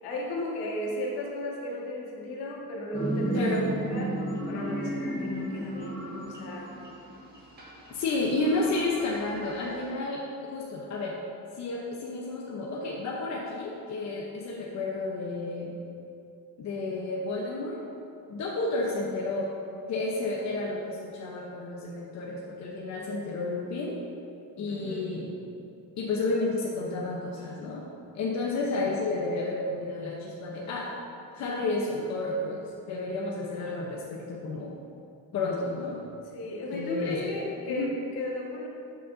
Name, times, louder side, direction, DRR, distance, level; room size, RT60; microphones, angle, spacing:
voice 1, 0.0-3.4 3.9-4.2 4.5-6.8 24.7-25.1 36.3-38.7, left 2 dB, 85° left, -2 dB, 1.8 m, -35 dB
sound 1, 2.9-9.9, right 2 dB, 25° right, 1.7 m, -34 dB
voice 2, 3.3-3.7 7.9-11.2 11.6-15.7 16.6-17.8 18.3-19.6 19.9-24.0 24.6-25.3 26.0-27.8 28.1-30.9 31.3-34.8 35.3-36.0 36.7-37.3 37.7-37.9, left 2 dB, 50° left, -3 dB, 1.0 m, -31 dB
12.5 x 6.3 x 2.7 m, 2.6 s
cardioid pair, 140°, 37 cm